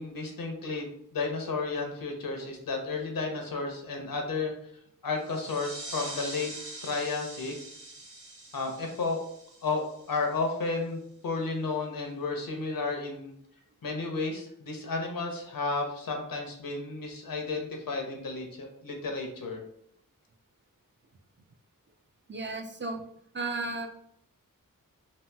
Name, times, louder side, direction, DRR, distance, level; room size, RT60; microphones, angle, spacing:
voice 1, 0.0-4.5 5.0-6.5 6.8-7.5 8.5-9.2 9.6-13.3 13.8-19.6, left 3 dB, 80° left, 2 dB, 0.7 m, -32 dB
sound 1, 5.2-10.5, right 2 dB, 60° right, 0.8 m, -44 dB
voice 2, 22.3-23.0 23.3-23.9, right 3 dB, 35° right, 4 dB, 0.4 m, -34 dB
2.9 x 2.8 x 2.2 m, 0.69 s
wide cardioid pair, 75°, 34 cm